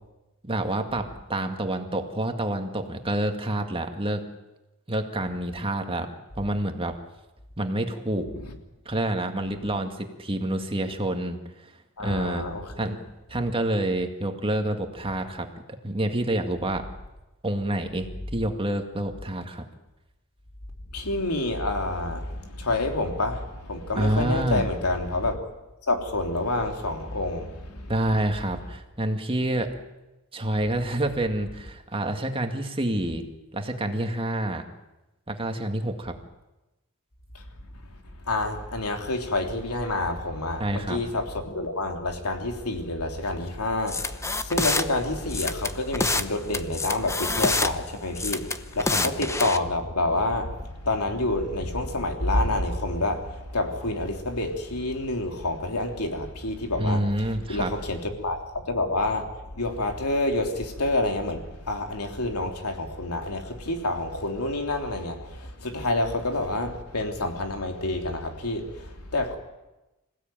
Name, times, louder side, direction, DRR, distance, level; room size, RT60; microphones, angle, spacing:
voice 1, 0.4-4.2 4.9-6.1 6.4-6.9 7.6-8.3 8.9-11.7 12.0-12.5 12.8-13.0 13.3-15.5 15.8-16.8 17.4-19.6 24.0-24.7 27.9-29.7 30.3-33.3 33.5-34.6 35.3-36.2 40.6-41.0 48.9-49.1 56.8-57.7, right 1 dB, 25° right, 2.1 m, -28 dB
voice 2, 12.0-12.9 20.9-25.5 25.9-27.9 37.3-37.4 38.2-59.2 59.5-69.4, left 2 dB, 85° left, 3.3 m, -28 dB
sound 1, 43.9-44.8 45.3-46.3 46.5-47.7 48.2-49.6, left 3 dB, 15° left, 0.9 m, -26 dB
26.5 x 16.5 x 9.1 m
head